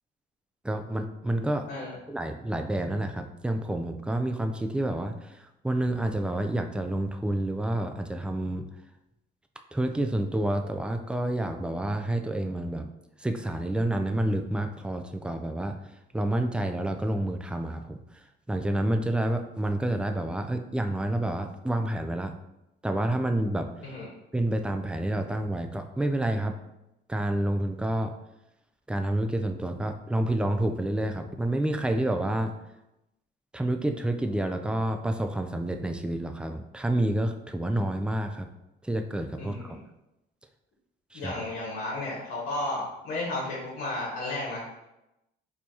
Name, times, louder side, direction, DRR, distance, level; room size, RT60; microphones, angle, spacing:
voice 1, 0.6-1.7 2.1-8.6 9.7-12.9 13.2-15.8 16.1-18.2 18.5-22.3 22.8-23.7 24.3-26.6 27.1-28.1 28.9-32.5 33.5-38.5 38.8-39.8 41.1-41.3, right 1 dB, 5° right, 6 dB, 0.3 m, -29 dB
voice 2, 39.4-39.8 41.1-44.8, left 2 dB, 75° left, -5 dB, 1.2 m, -33 dB
4.4 x 2.9 x 2.7 m, 0.91 s
cardioid pair, 90°, 20 cm